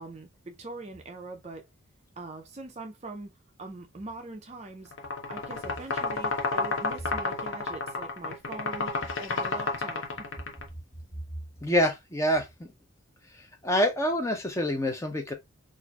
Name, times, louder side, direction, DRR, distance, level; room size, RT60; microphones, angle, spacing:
voice 1, 0.0-1.7 2.2-3.3 3.6-4.9 5.3-10.3, right 2 dB, 30° right, 0.4 m, -42 dB
sound 1, 4.9-10.7, left 3 dB, 70° left, 0.8 m, -31 dB
voice 2, 11.6-12.7 13.6-15.3, equal, 15° left, 0.6 m, -26 dB
4.2 x 2.5 x 2.3 m
head